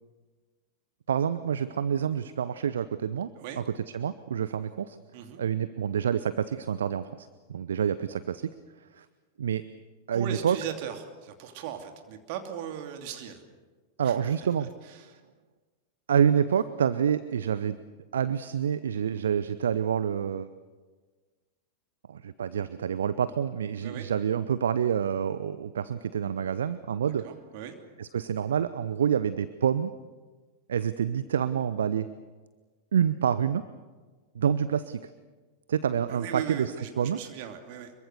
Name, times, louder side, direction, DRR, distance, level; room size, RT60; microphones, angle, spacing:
voice 1, 1.1-3.3 3.9-5.0 5.4-8.5 8.9-9.1 9.4-9.6 10.1-10.6 14.0-14.7 16.1-17.8 18.1-20.5 22.1-27.3 28.0-29.9 30.7-32.1 32.9-33.6 34.3-35.0 35.7-37.2, right 8 dB, 65° right, 15 dB, 0.7 m, -27 dB
voice 2, 10.1-13.4 14.0-14.3 14.9-15.2 23.8-24.1 27.2-27.7 36.1-37.9, right 9 dB, 50° right, 5 dB, 2.8 m, -38 dB
25.0 x 23.0 x 6.8 m, 1.4 s
figure-of-eight pair, 90°, 0 cm